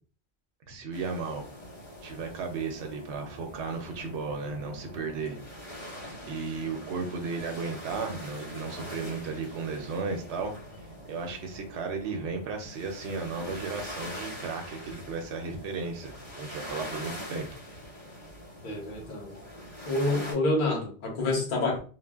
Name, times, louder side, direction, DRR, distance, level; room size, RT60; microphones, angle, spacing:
voice 1, 0.7-1.5 2.0-5.4 6.3-10.5 11.0-17.6, right 4 dB, 75° right, 3 dB, 0.8 m, -35 dB
sound 1, 0.9-20.3, equal, 25° left, 1.1 m, -43 dB
voice 2, 18.6-19.3 19.8-21.8, left 2 dB, 50° left, 0 dB, 1.0 m, -28 dB
3.2 x 2.0 x 2.3 m, 0.39 s
omnidirectional pair, 1.2 m